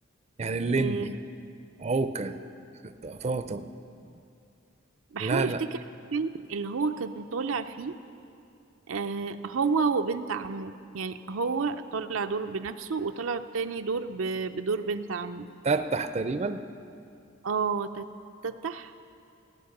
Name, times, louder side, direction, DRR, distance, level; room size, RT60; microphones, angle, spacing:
voice 1, 0.4-1.2 1.8-2.4 2.8-3.7 5.2-5.6 15.6-16.6, right 3 dB, 35° right, 10 dB, 0.5 m, -28 dB
voice 2, 5.1-5.7 6.1-8.0 8.9-15.5 17.4-18.1 18.4-18.9, right 5 dB, 85° right, 8 dB, 0.5 m, -30 dB
17.5 x 8.9 x 6.6 m, 2.5 s
head